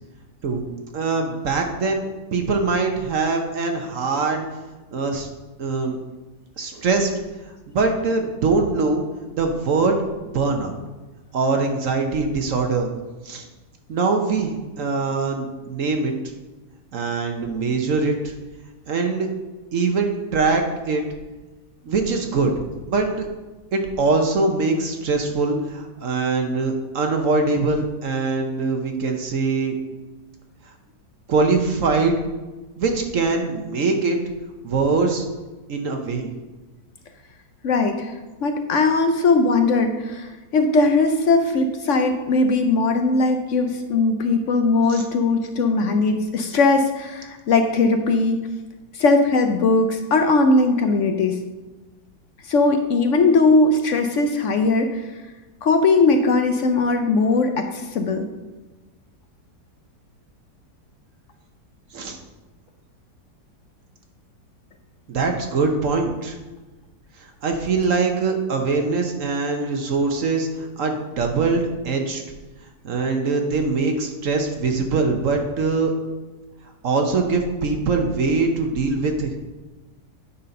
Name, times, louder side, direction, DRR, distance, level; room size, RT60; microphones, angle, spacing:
voice 1, 0.9-4.5 4.9-5.3 5.6-6.0 6.6-7.1 7.7-9.0 9.4-10.0 10.3-10.8 11.3-12.9 13.2-13.4 13.9-16.1 16.9-18.3 18.9-19.3 19.7-21.0 21.8-22.5 22.9-23.2 23.7-29.8 31.3-32.2 32.8-34.2 34.6-35.2 35.7-36.3 44.9-45.0 61.9-62.2 65.1-66.4 67.4-72.2 72.8-75.9 76.8-79.3, right 4 dB, 55° right, 4 dB, 1.1 m, -22 dB
voice 2, 37.6-38.1 38.4-48.4 48.9-51.4 52.5-55.1 55.6-58.3, left 3 dB, 65° left, 6 dB, 0.7 m, -19 dB
9.8 x 4.2 x 5.2 m, 1.2 s
omnidirectional pair, 1.9 m